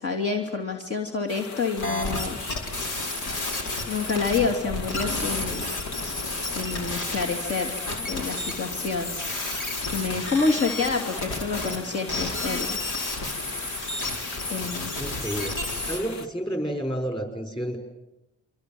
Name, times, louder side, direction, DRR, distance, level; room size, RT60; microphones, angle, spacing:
voice 1, 0.0-2.4 3.9-5.7 6.4-7.8 8.1-9.1 9.9-12.8 14.5-14.9, left 4 dB, 50° left, 2 dB, 2.9 m, -28 dB
sound 1, 1.3-16.3, left 5 dB, 65° left, 2.0 m, -40 dB
sound 2, 1.8-11.8 12.1-16.0, left 2 dB, 85° left, 5.0 m, -31 dB
voice 2, 15.0-15.5 15.9-17.8, right 1 dB, 15° left, 6 dB, 5.8 m, -30 dB
27.5 x 24.5 x 7.8 m, 0.93 s
cardioid pair, 90°, 30 cm